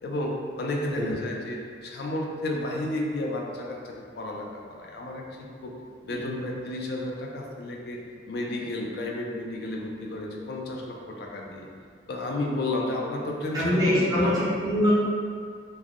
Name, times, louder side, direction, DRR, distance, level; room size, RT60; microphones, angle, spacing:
voice 1, 0.0-5.7 6.0-8.0 8.3-11.7 12.1-14.4, left 2 dB, 55° left, -1 dB, 0.3 m, -32 dB
voice 2, 13.5-14.9, equal, 20° right, -11 dB, 0.8 m, -24 dB
3.3 x 2.0 x 2.4 m, 2.1 s
head